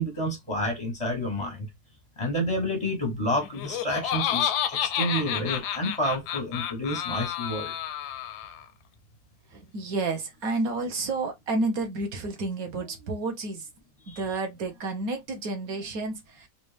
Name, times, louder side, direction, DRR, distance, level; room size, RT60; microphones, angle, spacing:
voice 1, 0.0-1.7 2.2-7.7 14.1-14.2, equal, 30° left, 0.6 m, -29 dB
Laughter, 3.4-8.7, left 10 dB, 75° left, 1.0 m, -30 dB
voice 2, 9.5-13.7 14.1-16.5, right 3 dB, 60° right, 1.3 m, -30 dB
4.1 x 2.5 x 3.2 m
omnidirectional pair, 1.9 m